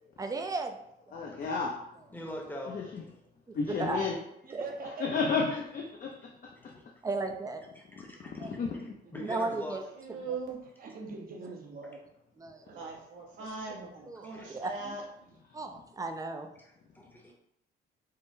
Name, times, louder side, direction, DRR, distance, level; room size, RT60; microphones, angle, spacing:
voice 1, 0.2-0.8 1.1-1.2 3.5-4.0 4.5-4.6 7.0-7.6 8.3-8.5 9.2-9.8 10.3-10.4 12.4-12.6 14.1-14.7 15.5-16.5, right 3 dB, 20° right, 5 dB, 0.4 m, -35 dB
voice 2, 1.1-1.8 2.7-3.0 3.5-4.2 4.8-6.7 8.3-8.9, left 4 dB, 45° left, -1 dB, 0.5 m, -33 dB
voice 3, 2.1-3.1 6.6-7.0 7.8-8.5 9.1-9.8 14.2-14.6 16.6-17.3, equal, 10° left, 0 dB, 0.8 m, -43 dB
voice 4, 4.4-5.3 9.5-9.6 10.8-12.0 12.5-13.0 14.8-15.0 15.2-15.4, right 3 dB, 45° right, 1 dB, 0.7 m, -43 dB
voice 5, 9.9-10.6 12.7-15.0, right 4 dB, 75° right, -3 dB, 1.0 m, -40 dB
3.7 x 2.1 x 2.6 m, 0.77 s
cardioid pair, 90°, 20 cm